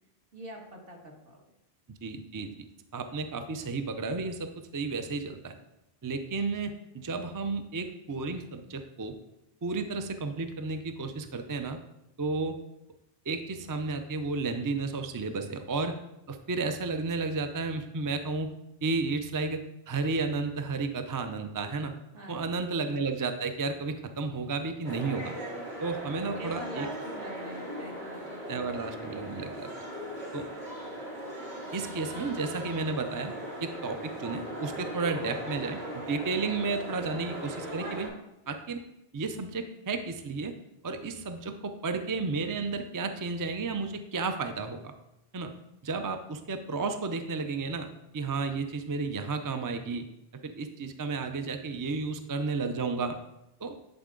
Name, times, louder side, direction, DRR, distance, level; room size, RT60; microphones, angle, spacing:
voice 1, 0.3-1.4 22.1-22.7 26.4-28.6 28.9-29.4, equal, 65° right, -1 dB, 1.6 m, -45 dB
voice 2, 2.0-2.5 2.9-5.6 6.0-9.1 9.6-11.8 12.2-12.6 13.3-16.0 16.3-18.5 18.8-19.6 19.9-21.9 22.3-25.4 25.8-26.9 28.5-29.9 30.3-30.5 31.7-33.3 33.6-38.1 38.5-38.8 39.1-40.5 40.8-44.9 45.3-45.5 45.8-47.9 48.1-50.0 50.4-53.2 53.6-53.7, right 4 dB, 30° right, 7 dB, 0.3 m, -32 dB
sound 1, 24.8-38.1, right 1 dB, 85° right, 2.4 m, -39 dB
10.5 x 4.5 x 3.8 m, 0.87 s
omnidirectional pair, 1.0 m